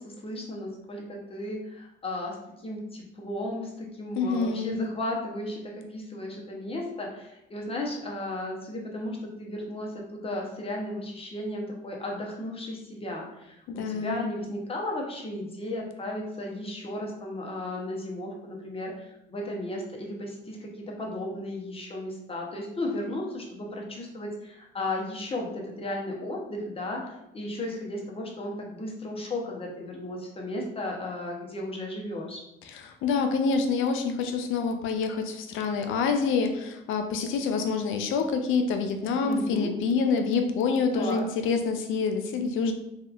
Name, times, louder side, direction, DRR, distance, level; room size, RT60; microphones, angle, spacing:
voice 1, 0.0-2.4 2.6-32.4 39.2-39.7 40.9-41.2, left 1 dB, 30° left, -1 dB, 0.7 m, -35 dB
voice 2, 4.2-4.9 13.8-14.3 32.7-42.7, left 5 dB, 85° left, 6 dB, 0.4 m, -27 dB
2.8 x 2.3 x 2.4 m, 0.85 s
cardioid pair, 90°, 20 cm